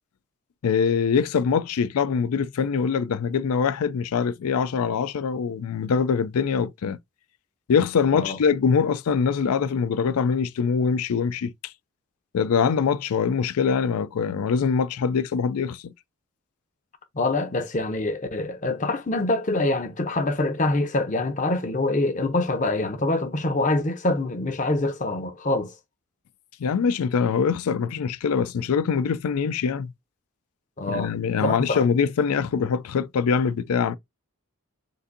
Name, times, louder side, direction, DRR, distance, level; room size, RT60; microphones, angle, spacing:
voice 1, 0.6-7.0 7.7-11.7 12.3-15.9 26.6-29.9 30.9-33.9, left 6 dB, 80° left, 0.4 m, -23 dB
voice 2, 17.1-25.7 30.8-31.1 31.4-31.9, left 2 dB, 35° left, 0.6 m, -25 dB
6.6 x 2.6 x 2.6 m
head